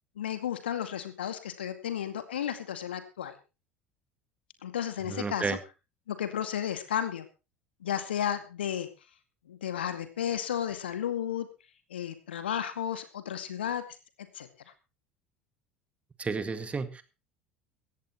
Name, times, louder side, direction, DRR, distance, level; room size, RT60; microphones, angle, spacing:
voice 1, 0.2-3.3 4.6-5.6 6.1-7.3 7.8-8.9 9.5-11.5 11.9-13.8 14.3-14.5, left 9 dB, 70° left, 10 dB, 2.1 m, -33 dB
voice 2, 5.0-5.6 16.2-17.0, right 4 dB, 20° right, 12 dB, 2.0 m, -32 dB
17.5 x 15.0 x 3.1 m, 0.30 s
figure-of-eight pair, 70°, 6 cm